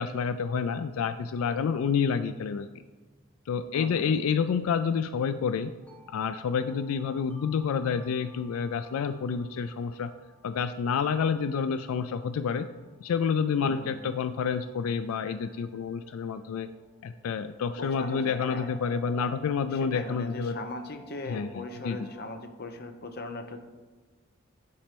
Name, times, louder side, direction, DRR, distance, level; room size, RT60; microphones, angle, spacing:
voice 1, 0.0-2.7 3.5-5.7 6.1-10.1 10.4-12.7 13.0-16.7 17.0-20.6 21.3-21.5 21.8-22.0, left 6 dB, 80° left, 11 dB, 0.3 m, -28 dB
voice 2, 3.7-4.2 13.6-14.1 17.8-19.0 19.7-23.6, left 2 dB, 45° left, 6 dB, 0.8 m, -39 dB
sound 1, 5.8-22.3, right 2 dB, 10° left, 1.5 m, -56 dB
8.8 x 4.3 x 5.2 m, 1.4 s
head